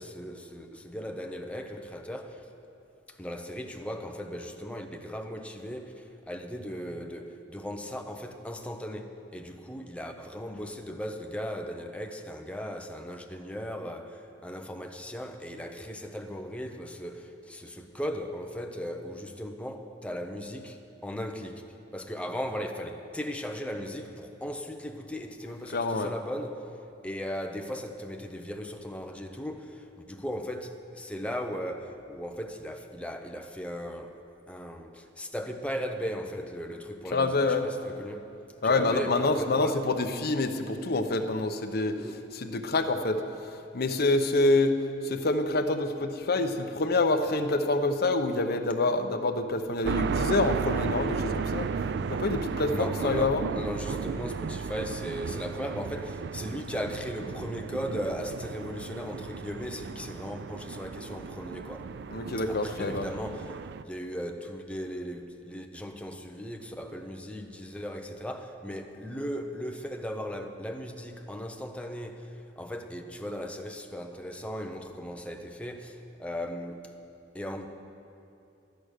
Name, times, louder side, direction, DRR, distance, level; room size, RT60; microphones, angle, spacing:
voice 1, 0.0-2.5 3.1-21.6 21.9-26.6 27.0-34.2 34.5-38.3 38.6-39.8 42.0-42.3 52.7-61.9 62.5-63.6 63.8-76.8 77.3-77.7, equal, 5° left, 4 dB, 0.8 m, -37 dB
voice 2, 25.7-26.2 37.0-37.7 38.6-44.7 45.0-51.7 52.1-53.5 62.1-63.1, left 2 dB, 55° left, 6 dB, 0.8 m, -27 dB
sound 1, 49.8-63.8, right 5 dB, 65° right, 0.4 m, -34 dB
12.5 x 10.5 x 6.6 m, 2.7 s
head